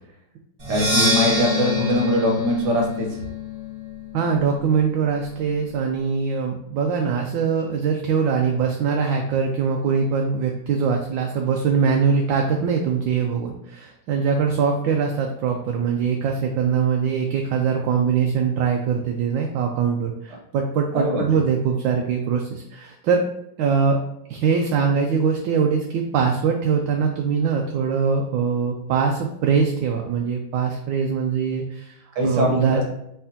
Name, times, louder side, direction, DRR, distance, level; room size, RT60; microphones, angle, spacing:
Percussion, 0.6-4.4, left 2 dB, 25° right, 1.2 m, -25 dB
voice 1, 0.7-3.1 20.9-21.2 32.1-32.8, equal, 60° right, 1 dB, 1.5 m, -22 dB
voice 2, 4.1-23.2 23.6-24.0 24.3-32.0 32.2-32.8, right 6 dB, 75° right, 2 dB, 1.2 m, -22 dB
4.3 x 4.3 x 2.7 m, 0.78 s
omnidirectional pair, 2.2 m